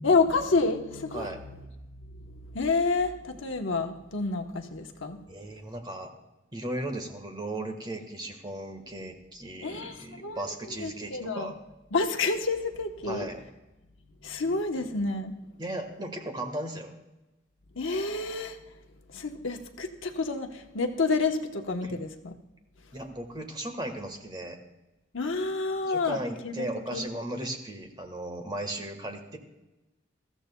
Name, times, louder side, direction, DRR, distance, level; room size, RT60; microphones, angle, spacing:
voice 1, 0.0-1.6 2.2-5.2 9.6-11.5 11.9-13.3 14.2-15.3 17.8-18.6 19.1-22.3 25.1-26.2 26.4-27.0, left 3 dB, 70° left, 4 dB, 1.1 m, -29 dB
voice 2, 5.3-6.1 6.5-11.6 13.0-13.4 15.6-16.9 21.8-22.0 22.9-24.6 25.8-29.4, right 1 dB, 20° right, 5 dB, 1.5 m, -36 dB
21.0 x 14.5 x 2.3 m, 1.0 s
head